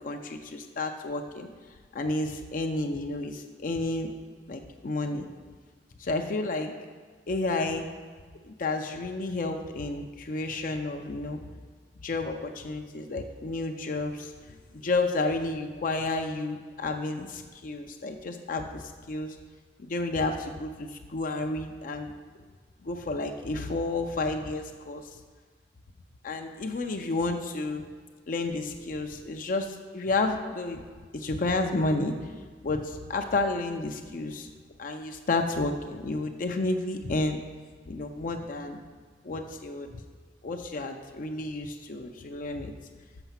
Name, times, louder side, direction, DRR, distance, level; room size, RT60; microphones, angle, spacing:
voice 1, 0.0-1.5 1.9-4.1 4.5-5.3 6.0-6.7 7.3-7.9 8.4-11.4 12.0-19.4 19.8-22.1 22.8-25.0 26.2-27.8 28.3-30.8 31.1-32.3 32.6-34.5 34.8-37.4 37.9-38.8 39.2-39.9 40.4-42.7, left 2 dB, 50° left, 5 dB, 0.5 m, -31 dB
6.9 x 5.6 x 5.7 m, 1.5 s
head